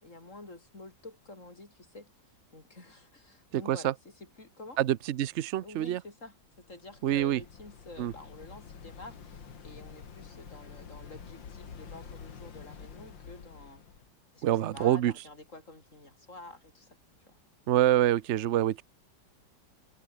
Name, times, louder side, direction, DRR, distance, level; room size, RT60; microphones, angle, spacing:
voice 1, 0.0-2.1 2.5-4.8 5.6-13.9 14.3-17.4, left 2 dB, 40° left, 5.8 m, -49 dB
voice 2, 3.5-3.9 4.8-6.0 7.0-7.4 8.0-8.1 14.4-15.1 17.7-18.8, right 12 dB, 65° right, 0.7 m, -26 dB
Waves surf, 6.4-14.1, left 6 dB, 80° left, 2.8 m, -48 dB
omnidirectional pair, 2.0 m